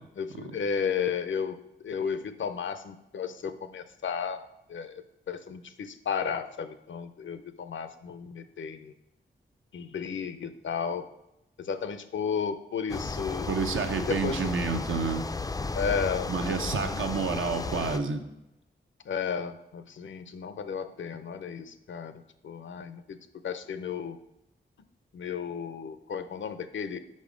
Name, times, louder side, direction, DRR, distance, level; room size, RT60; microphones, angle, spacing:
voice 1, 0.0-4.4 4.7-8.9 9.7-11.1 11.6-13.5 13.9-14.5 15.8-16.3 16.7-17.3 19.1-22.1 22.4-23.2 23.4-24.2 25.1-27.0, left 6 dB, 70° left, 11 dB, 0.6 m, -33 dB
sound 1, 12.9-18.0, left 3 dB, 20° left, 0.3 m, -34 dB
voice 2, 13.5-15.3 16.3-18.2, right 5 dB, 80° right, 6 dB, 0.8 m, -29 dB
5.4 x 5.3 x 5.0 m, 0.88 s
wide cardioid pair, 100°, 20 cm